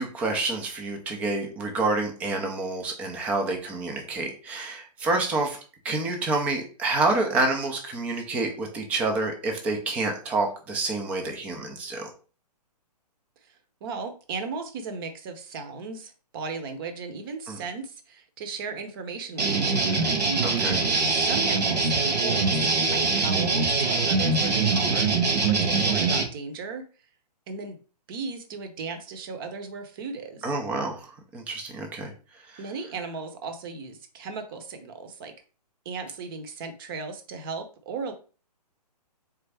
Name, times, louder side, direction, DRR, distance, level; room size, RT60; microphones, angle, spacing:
voice 1, 0.0-5.6 5.8-12.1 17.5-17.6 20.4-20.8 30.4-32.1 32.5-32.6, right 3 dB, 5° right, 3 dB, 0.3 m, -28 dB
voice 2, 13.8-20.1 21.0-25.1 25.5-26.8 27.5-27.8 28.1-30.4 32.6-35.3 35.9-38.1, right 4 dB, 35° right, 6 dB, 0.7 m, -36 dB
sound 1, 19.4-26.2, right 4 dB, 75° right, 1.7 m, -23 dB
3.8 x 3.4 x 3.3 m, 0.37 s
hypercardioid pair, 150°, 21 cm